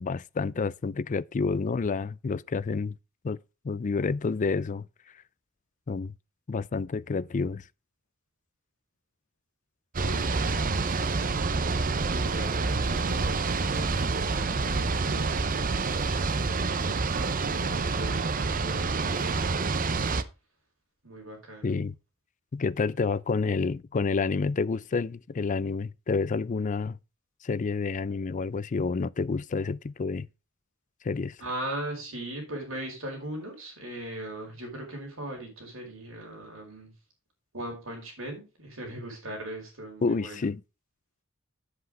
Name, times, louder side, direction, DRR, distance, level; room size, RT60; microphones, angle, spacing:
voice 1, 0.0-2.9 3.2-3.4 3.6-4.9 5.9-6.1 6.5-7.6 21.6-22.0 22.5-27.0 27.4-30.3 31.0-31.4 40.0-40.6, left 4 dB, 40° left, 0.4 m, -29 dB
sound 1, 9.9-20.2, right 4 dB, 40° right, 0.7 m, -27 dB
voice 2, 10.0-10.9 12.0-15.5 16.5-19.9 21.0-21.8 31.4-36.9 37.5-40.5, right 1 dB, 70° right, 5.2 m, -39 dB
8.3 x 7.8 x 5.0 m
head